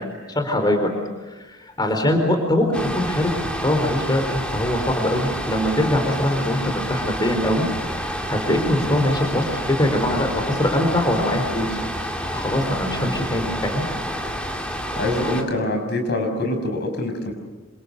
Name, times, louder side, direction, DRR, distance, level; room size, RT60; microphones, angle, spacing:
voice 1, 0.3-0.9 1.3-11.7 12.3-13.9, left 1 dB, 20° left, 4 dB, 4.0 m, -22 dB
sound 1, 2.7-15.4, equal, 5° left, 2.8 m, -29 dB
voice 2, 14.9-17.3, left 1 dB, 55° left, 5 dB, 5.9 m, -24 dB
28.0 x 26.5 x 6.8 m, 1.2 s
head